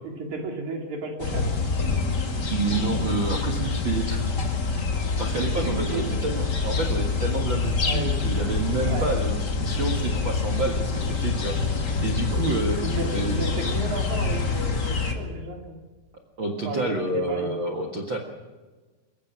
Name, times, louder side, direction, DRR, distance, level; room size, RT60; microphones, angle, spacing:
voice 1, 0.0-1.5 5.6-6.0 7.9-8.5 8.8-9.2 12.8-15.8 16.6-17.5, right 2 dB, 45° right, 1 dB, 4.1 m, -33 dB
sound 1, 1.2-15.1, left 4 dB, 40° left, 1.5 m, -26 dB
voice 2, 2.5-4.2 4.7-4.9 5.2-13.4 16.4-18.2, right 3 dB, 70° right, 4 dB, 1.1 m, -29 dB
22.5 x 21.0 x 6.1 m, 1.3 s
omnidirectional pair, 5.1 m